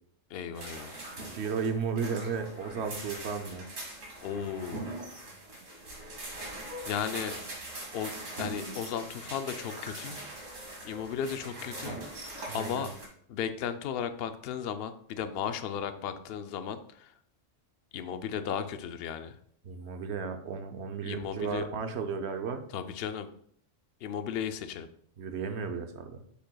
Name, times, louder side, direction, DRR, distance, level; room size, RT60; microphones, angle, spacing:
voice 1, 0.3-1.0 4.2-4.9 6.9-7.3 7.9-10.2 10.8-12.9 13.3-17.1 17.9-19.4 21.0-21.7 22.7-23.3 24.0-24.9, left 8 dB, 60° left, 10 dB, 0.7 m, -35 dB
sound 1, 0.5-13.1, right 1 dB, 85° right, 2.2 m, -42 dB
voice 2, 1.3-3.7 12.5-12.9 19.6-22.7 25.2-26.2, right 5 dB, 65° right, 6 dB, 0.9 m, -34 dB
7.6 x 6.8 x 2.3 m, 0.64 s
omnidirectional pair, 1.3 m